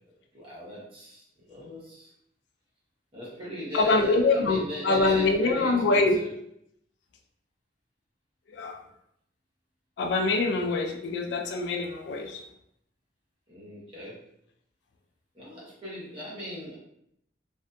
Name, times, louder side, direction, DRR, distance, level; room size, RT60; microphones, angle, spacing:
voice 1, 0.3-2.1 3.1-6.3 13.5-14.2 15.3-16.8, equal, 30° right, -7 dB, 0.9 m, -38 dB
voice 2, 3.7-6.2 8.5-8.8 10.0-12.4, left 3 dB, 75° left, 4 dB, 0.3 m, -24 dB
2.5 x 2.5 x 2.2 m, 0.74 s
head